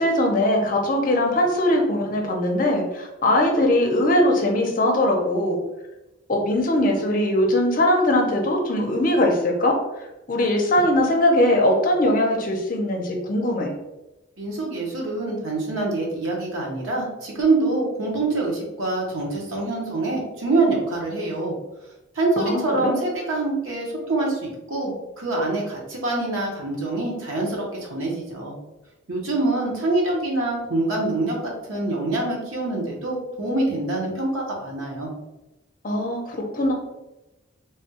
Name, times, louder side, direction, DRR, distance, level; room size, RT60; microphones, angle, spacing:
voice 1, 0.0-5.6 6.4-9.8 10.3-13.7 22.4-22.9 35.8-36.7, left 1 dB, 45° left, 1 dB, 0.6 m, -21 dB
voice 2, 14.4-21.5 22.1-28.5 29.1-35.1, right 2 dB, 85° right, -2 dB, 0.9 m, -25 dB
3.3 x 2.2 x 2.8 m, 0.97 s
head